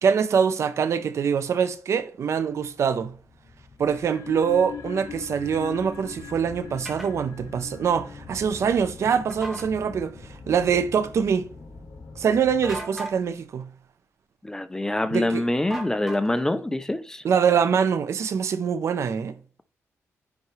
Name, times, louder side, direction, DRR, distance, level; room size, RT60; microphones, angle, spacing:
voice 1, 0.0-3.1 3.8-11.5 12.2-13.7 15.1-15.4 17.2-19.3, right 7 dB, 65° right, 0.7 m, -24 dB
sound 1, 2.5-13.1, left 3 dB, 60° left, 2.9 m, -45 dB
sound 2, 3.8-10.7, left 7 dB, 80° left, 0.8 m, -42 dB
sound 3, 6.9-7.1 9.3-9.7 12.6-13.2 15.7-16.5, right 2 dB, 5° right, 1.6 m, -36 dB
voice 2, 14.4-17.2, left 1 dB, 10° left, 0.5 m, -25 dB
9.5 x 4.3 x 3.2 m
wide cardioid pair, 125°, 5 cm